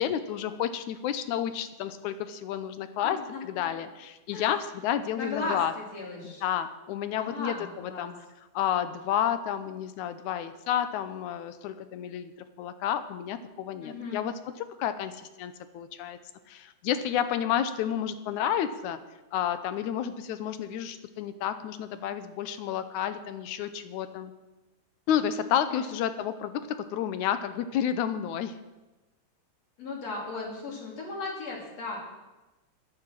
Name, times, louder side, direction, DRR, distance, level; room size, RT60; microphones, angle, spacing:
voice 1, 0.0-5.7 6.2-8.1 8.5-12.3 12.6-14.4 14.7-16.2 16.5-19.0 19.3-24.3 25.1-28.5, left 9 dB, 80° left, 11 dB, 2.2 m, -30 dB
voice 2, 3.0-3.8 4.3-4.5 5.2-6.4 7.2-8.1 13.8-14.3 25.7-25.9 29.8-32.0, left 3 dB, 60° left, -3 dB, 4.2 m, -36 dB
10.5 x 9.8 x 7.5 m, 1.1 s
omnidirectional pair, 3.4 m